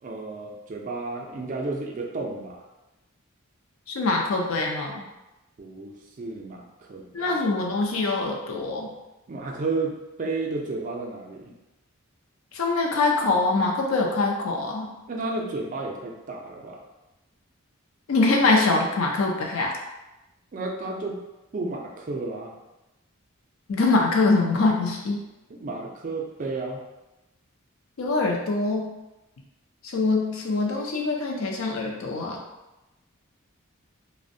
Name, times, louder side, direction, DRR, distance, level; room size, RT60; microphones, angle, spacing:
voice 1, 0.0-2.6 5.6-7.3 9.3-11.5 15.1-16.8 20.5-21.2 21.5-22.5 25.5-26.8, right 3 dB, 40° right, 0 dB, 0.3 m, -32 dB
voice 2, 3.9-5.0 7.1-8.9 12.5-14.9 18.1-19.7 23.7-25.2 28.0-28.9 29.8-32.4, left 3 dB, 75° left, 0 dB, 0.4 m, -24 dB
2.5 x 2.1 x 2.6 m, 1.0 s
head